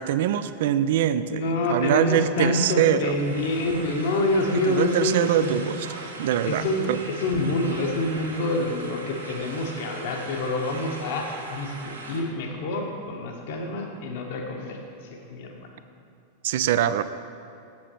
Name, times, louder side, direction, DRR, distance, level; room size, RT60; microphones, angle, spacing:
voice 1, 0.0-3.1 4.7-5.9 6.2-7.0 16.4-17.0, right 10 dB, 55° right, 13 dB, 0.3 m, -23 dB
voice 2, 1.3-5.6 6.5-11.7 12.1-14.8 15.1-15.7, left 2 dB, 55° left, 2 dB, 1.1 m, -27 dB
sound 1, 3.0-12.2, right 2 dB, 75° right, 0.9 m, -40 dB
7.5 x 7.4 x 4.3 m, 2.6 s
figure-of-eight pair, 90°, 0 cm